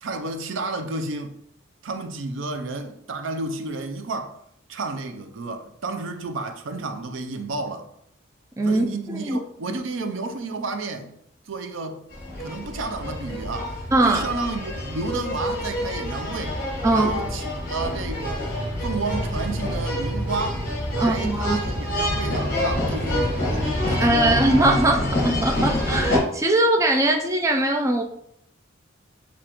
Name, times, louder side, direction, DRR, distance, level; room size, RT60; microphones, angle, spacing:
voice 1, 0.0-1.3 1.8-4.4 4.7-7.9 8.6-11.2 11.5-12.0 12.4-16.6 16.9-18.5 18.8-24.6, right 3 dB, 70° right, 0.5 m, -31 dB
voice 2, 8.6-9.4 13.9-14.3 16.8-17.1 21.0-21.6 24.0-28.0, right 1 dB, 15° right, 0.3 m, -21 dB
sound 1, 12.1-26.2, left 1 dB, 45° left, 1.3 m, -27 dB
6.8 x 2.4 x 2.9 m
head